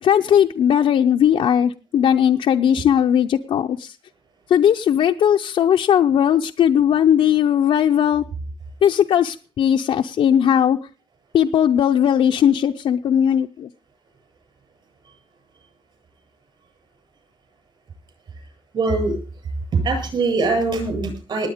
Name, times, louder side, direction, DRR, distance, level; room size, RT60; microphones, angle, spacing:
voice 1, 0.0-3.9 4.5-8.2 8.8-10.8 11.3-13.7, left 9 dB, 75° left, 3 dB, 0.6 m, -18 dB
voice 2, 18.7-19.2 19.7-21.5, right 3 dB, 55° right, 5 dB, 7.9 m, -22 dB
19.5 x 8.8 x 5.0 m, 0.38 s
wide cardioid pair, 175°, 10 cm